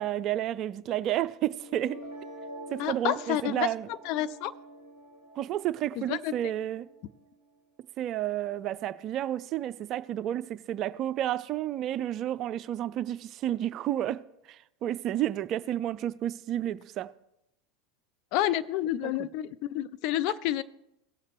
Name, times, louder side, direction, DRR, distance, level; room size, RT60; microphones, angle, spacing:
voice 1, 0.0-2.0 2.7-3.9 5.4-6.9 8.0-14.2 14.5-17.1 19.0-19.3, right 12 dB, 45° right, 0.4 m, -31 dB
sound 1, 1.5-7.5, right 1 dB, 70° left, 4.9 m, -46 dB
voice 2, 2.8-4.5 6.0-6.3 18.3-20.6, left 13 dB, 55° left, 0.4 m, -29 dB
17.5 x 7.3 x 3.1 m
figure-of-eight pair, 80°, 0 cm